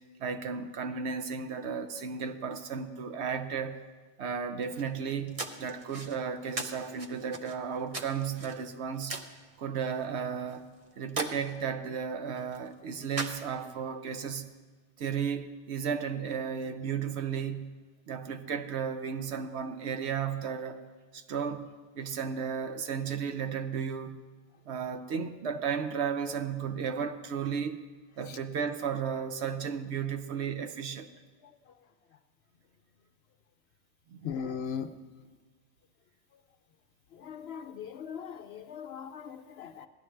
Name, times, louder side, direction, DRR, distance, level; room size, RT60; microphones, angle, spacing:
voice 1, 0.2-3.8 4.2-9.2 9.6-10.7 11.0-14.5 15.0-17.7 18.1-20.8 21.1-21.7 21.9-24.2 24.7-27.8 28.2-31.1 34.1-34.3, right 6 dB, 65° right, 8 dB, 0.9 m, -34 dB
sound 1, 4.6-13.9, right 3 dB, 35° right, 0.6 m, -42 dB
voice 2, 34.2-34.9 37.2-39.9, left 7 dB, 65° left, 9 dB, 0.7 m, -38 dB
16.5 x 11.0 x 3.3 m, 1.4 s
omnidirectional pair, 1.3 m